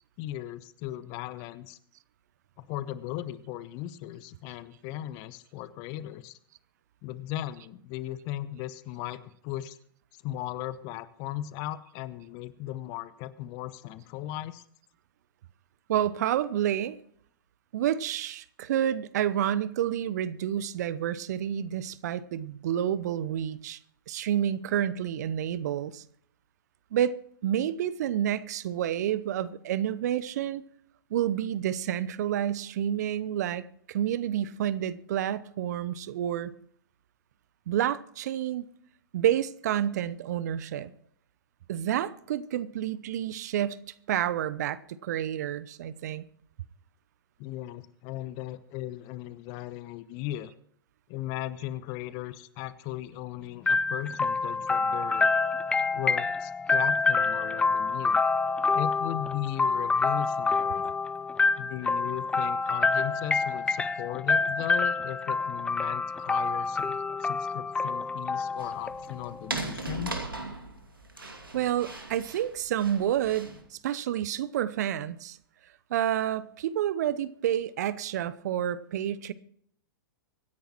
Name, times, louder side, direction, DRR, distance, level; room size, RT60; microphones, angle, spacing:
voice 1, 0.2-1.8 2.6-6.4 7.0-9.8 10.2-14.6 47.4-50.5 51.1-55.3 55.9-58.2 58.7-60.9 61.6-70.2, left 13 dB, 35° left, 0.9 m, -37 dB
voice 2, 15.9-17.0 17.7-23.8 24.1-26.0 26.9-27.2 27.4-30.6 31.1-33.6 33.9-36.5 37.7-38.7 39.1-40.9 41.7-46.2 71.2-75.4 75.9-79.3, right 10 dB, 50° right, 0.7 m, -29 dB
sound 1, 53.7-69.4, left 4 dB, 10° left, 0.5 m, -27 dB
sound 2, 68.6-73.6, right 2 dB, 90° right, 2.4 m, -38 dB
24.5 x 10.5 x 3.0 m
figure-of-eight pair, 110°, 11 cm